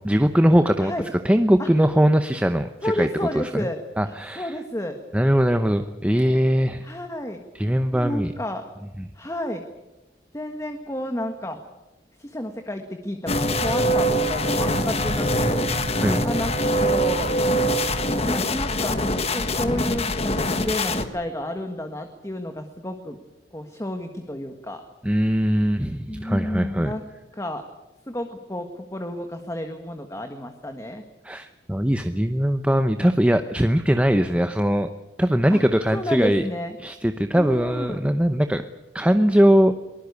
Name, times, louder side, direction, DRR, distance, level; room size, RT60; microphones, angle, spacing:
voice 1, 0.0-0.9 1.2-3.1 3.3-3.7 4.0-4.5 5.1-6.8 7.5-8.3 16.0-16.2 25.0-26.9 31.2-34.9 35.2-36.4 36.8-38.6 38.9-39.7, equal, 5° right, 8 dB, 0.8 m, -20 dB
voice 2, 2.8-5.0 6.8-7.4 7.9-8.7 9.1-9.7 10.3-11.6 12.2-15.6 16.2-17.3 18.0-23.2 23.5-24.8 26.1-27.0 27.3-27.7 28.1-31.0 35.5-35.6 35.9-36.8 37.4-38.1, left 1 dB, 15° left, 6 dB, 1.6 m, -31 dB
sound 1, 13.3-21.0, equal, 35° left, 1.7 m, -23 dB
23.0 x 20.5 x 8.3 m, 1.0 s
head